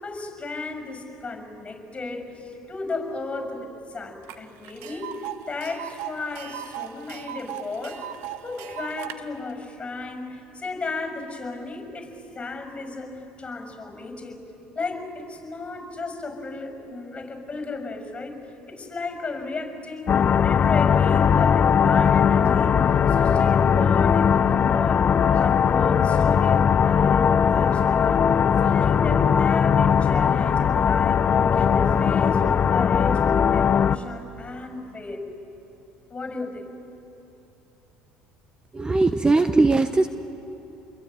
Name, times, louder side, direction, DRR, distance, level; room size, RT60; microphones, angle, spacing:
voice 1, 0.0-8.0 8.4-14.4 14.7-18.4 18.7-20.2 20.4-22.8 23.1-35.2 36.1-36.7, left 3 dB, 25° left, 5 dB, 6.2 m, -34 dB
Tick, 4.3-4.4 4.6-9.2, right 11 dB, 70° right, 1.3 m, -37 dB
sound 1, 20.1-34.0, left 7 dB, 40° left, 0.7 m, -19 dB
voice 2, 38.7-40.1, right 3 dB, 20° right, 9 dB, 1.0 m, -19 dB
27.5 x 22.5 x 9.2 m, 3.0 s
hypercardioid pair, 75°, 4 cm